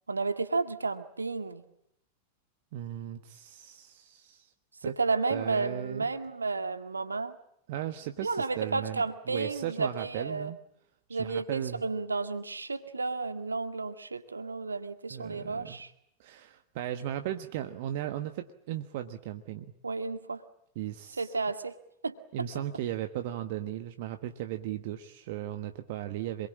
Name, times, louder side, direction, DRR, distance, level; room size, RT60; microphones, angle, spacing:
voice 1, 0.1-1.6 4.8-7.4 8.2-10.5 11.1-15.9 19.8-20.4 21.2-21.7 22.0-22.2, right 4 dB, 80° right, 9 dB, 2.0 m, -32 dB
voice 2, 2.7-4.5 4.8-5.0 5.3-6.1 7.7-10.6 11.1-11.8 15.1-15.8 16.2-19.7 20.7-21.3 22.3-26.5, right 12 dB, 50° right, 8 dB, 1.4 m, -36 dB
27.0 x 22.0 x 8.7 m, 0.73 s
figure-of-eight pair, 90°, 0 cm